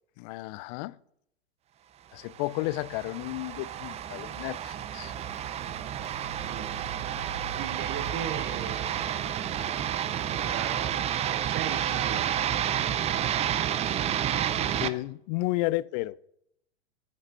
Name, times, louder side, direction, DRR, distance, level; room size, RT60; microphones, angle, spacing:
voice 1, 0.2-1.0 2.1-5.1 13.5-13.6 14.6-16.3, left 19 dB, 40° left, 0.4 m, -32 dB
sound 1, 2.4-14.9, right 10 dB, 20° right, 0.5 m, -30 dB
Rain, 5.0-10.8, right 7 dB, 85° right, 0.8 m, -44 dB
voice 2, 6.1-6.8 7.5-9.5 10.2-12.3, right 9 dB, 40° right, 1.3 m, -39 dB
10.0 x 6.6 x 6.8 m
hypercardioid pair, 110°, 34 cm